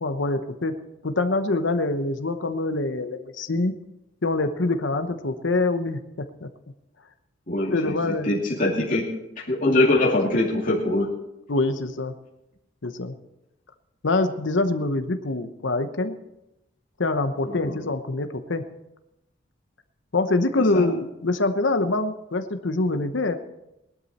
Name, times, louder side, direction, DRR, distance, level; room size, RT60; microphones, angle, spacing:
voice 1, 0.0-0.7 1.0-3.7 4.2-6.5 7.7-8.3 11.5-12.1 12.8-13.1 14.0-16.1 17.0-18.6 20.1-23.4, left 2 dB, 70° left, 8 dB, 1.0 m, -25 dB
voice 2, 7.5-8.0 8.3-9.0 9.5-11.1 17.5-17.8 20.7-20.8, left 2 dB, 40° left, -6 dB, 2.6 m, -22 dB
19.0 x 12.0 x 4.3 m, 0.88 s
head